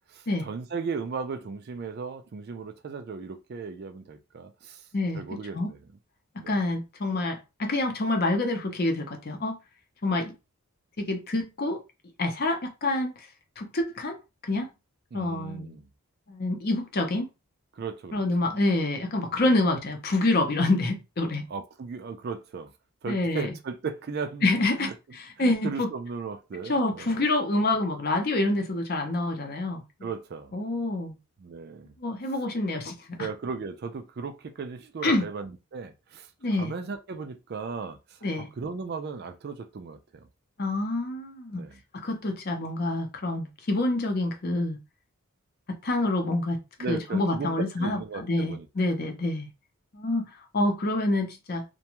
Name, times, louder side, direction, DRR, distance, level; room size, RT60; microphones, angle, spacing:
voice 1, 0.1-4.9 5.1-5.8 6.4-6.6 15.1-15.9 17.7-18.6 19.3-19.6 21.5-22.7 23.0-24.9 25.4-27.3 27.6-27.7 30.0-30.5 31.4-31.9 33.2-40.3 41.5-41.8 46.8-48.7, right 5 dB, 45° right, 0.3 m, -36 dB
voice 2, 6.5-9.6 10.0-10.3 11.0-11.8 12.2-13.1 13.6-14.1 14.5-14.7 15.1-15.8 16.3-17.3 18.1-21.4 23.1-23.5 24.4-25.9 26.7-29.8 30.5-31.1 32.0-33.3 35.0-35.2 36.4-36.7 38.2-38.5 40.6-41.6 42.0-44.8 45.8-46.6 46.9-49.5 49.9-50.3 50.5-51.6, left 2 dB, 45° left, 0.6 m, -27 dB
2.5 x 2.2 x 2.9 m
head